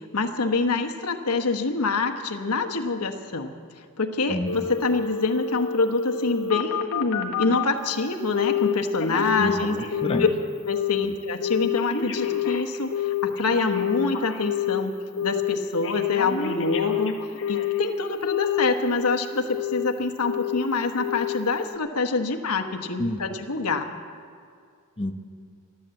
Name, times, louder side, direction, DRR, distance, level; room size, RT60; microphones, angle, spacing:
voice 1, 0.0-3.5 4.0-9.8 10.2-10.3 10.6-14.9 15.2-17.2 17.5-23.9, left 3 dB, 85° left, 5 dB, 1.2 m, -26 dB
voice 2, 4.3-4.7 9.4-10.3 23.0-23.2 25.0-25.2, left 1 dB, 25° left, 4 dB, 0.9 m, -28 dB
Telephone, 4.5-7.7 8.3-8.7 9.0-10.4 10.7-11.1 11.4-14.8 15.2-15.6 15.8-17.9 18.3-19.1 19.5-19.9 20.2-20.6 21.0-21.4 21.7-21.8, left 9 dB, 60° left, 1.5 m, -27 dB
13.0 x 12.5 x 7.7 m, 2.3 s
head